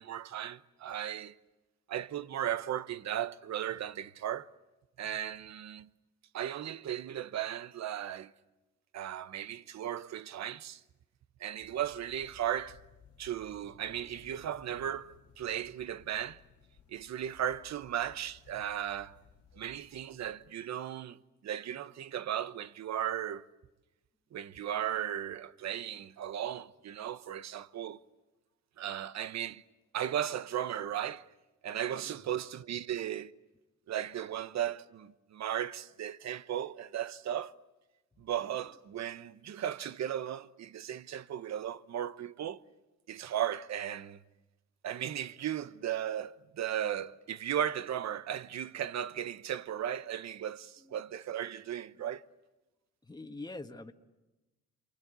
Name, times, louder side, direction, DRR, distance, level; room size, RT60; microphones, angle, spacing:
voice 1, 0.0-1.3 1.9-4.5 5.0-5.9 6.3-8.3 8.9-10.8 11.4-12.8 13.2-16.4 16.9-19.2 19.5-23.4 24.3-28.0 28.8-29.6 29.9-31.3 31.6-33.3 33.9-37.5 38.2-42.6 43.1-44.2 44.8-52.2, right 10 dB, 65° right, 1.1 m, -36 dB
sound 1, 11.6-20.5, left 7 dB, 75° left, 3.1 m, -60 dB
voice 2, 32.0-32.3 50.8-51.0 53.0-53.9, left 2 dB, 15° left, 1.6 m, -45 dB
28.5 x 24.0 x 8.3 m
cardioid pair, 90°, 30 cm